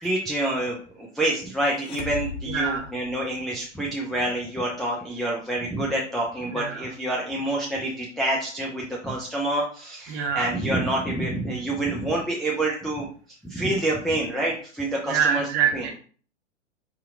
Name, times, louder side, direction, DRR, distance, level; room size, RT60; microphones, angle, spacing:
voice 1, 0.0-13.1 13.4-15.5 15.7-15.9, right 1 dB, ahead, -5 dB, 0.4 m, -27 dB
sound 1, 1.7-3.8, left 5 dB, 55° left, 0.8 m, -37 dB
voice 2, 2.5-2.9 6.5-6.9 10.1-10.5 15.1-16.0, right 7 dB, 30° right, 2 dB, 1.3 m, -25 dB
5.0 x 2.8 x 3.7 m, 0.43 s
figure-of-eight pair, 100°, 37 cm